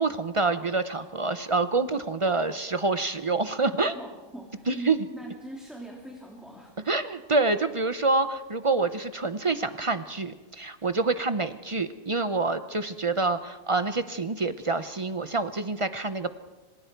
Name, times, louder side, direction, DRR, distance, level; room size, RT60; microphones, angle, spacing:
voice 1, 0.0-3.9 4.7-5.0 6.9-16.3, right 3 dB, 35° right, 11 dB, 0.5 m, -27 dB
voice 2, 3.9-6.9, right 2 dB, ahead, -1 dB, 2.9 m, -41 dB
27.0 x 26.5 x 4.6 m, 1.3 s
omnidirectional pair, 1.6 m